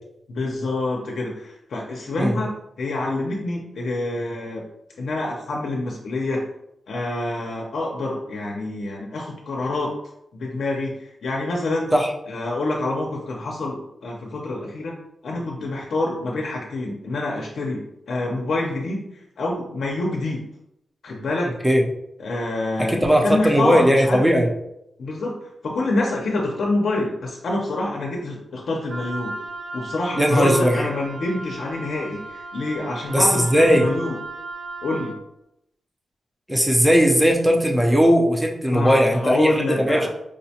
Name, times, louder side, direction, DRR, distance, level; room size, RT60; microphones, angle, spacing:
voice 1, 0.3-4.6 5.0-6.4 6.9-9.9 10.3-11.9 12.3-14.9 15.2-20.4 21.0-21.6 22.2-24.2 25.0-25.4 25.6-29.3 29.7-34.1 34.8-35.1 38.7-40.1, left 2 dB, 65° left, -1 dB, 0.5 m, -26 dB
voice 2, 22.8-24.5 30.1-30.9 33.1-33.9 36.5-40.1, equal, 5° right, 0 dB, 0.5 m, -18 dB
Wind instrument woodwind instrument, 28.9-35.2, right 2 dB, 70° right, 0.8 m, -36 dB
4.7 x 2.1 x 2.7 m, 0.82 s
wide cardioid pair, 160°, 0 cm